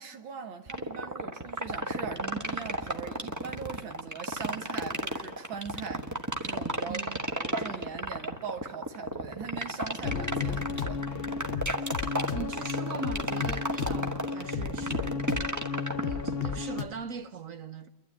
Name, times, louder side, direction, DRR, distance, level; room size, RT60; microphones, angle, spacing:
voice 1, 0.0-7.0 7.3-11.0, right 6 dB, 80° right, 2.2 m, -41 dB
sound 1, 0.7-16.6, right 1 dB, 10° right, 1.0 m, -32 dB
voice 2, 6.9-7.2 12.3-15.2 16.0-17.9, right 5 dB, 55° right, 1.0 m, -40 dB
sound 2, 10.0-16.8, left 6 dB, 60° left, 0.6 m, -33 dB
29.5 x 12.0 x 8.6 m
omnidirectional pair, 2.1 m